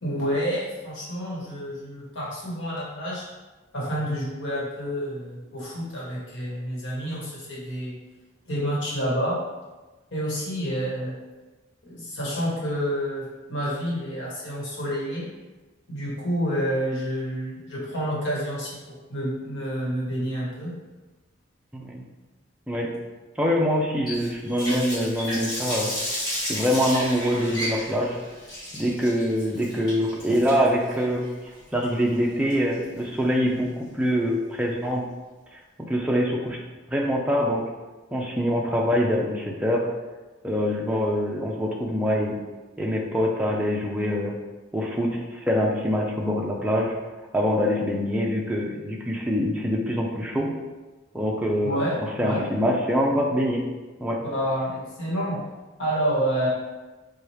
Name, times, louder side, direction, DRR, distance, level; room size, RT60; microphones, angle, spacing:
voice 1, 0.0-3.3 3.7-8.0 8.5-9.4 10.1-11.2 11.8-15.3 15.9-20.7 51.6-52.5 54.2-55.4 55.8-56.5, equal, 65° left, -6 dB, 1.2 m, -29 dB
voice 2, 21.7-22.0 22.7-22.9 23.4-25.9 26.5-28.2 28.7-31.3 31.7-35.0 35.9-36.6 36.9-37.6 38.1-39.9 40.4-42.3 42.8-44.4 44.7-47.0 47.3-50.5 51.1-53.6 54.0-54.2, equal, 5° right, -2 dB, 0.4 m, -24 dB
Water tap faucet, 24.1-33.0, equal, 20° left, 1.3 m, -33 dB
4.3 x 2.3 x 3.2 m, 1.2 s
head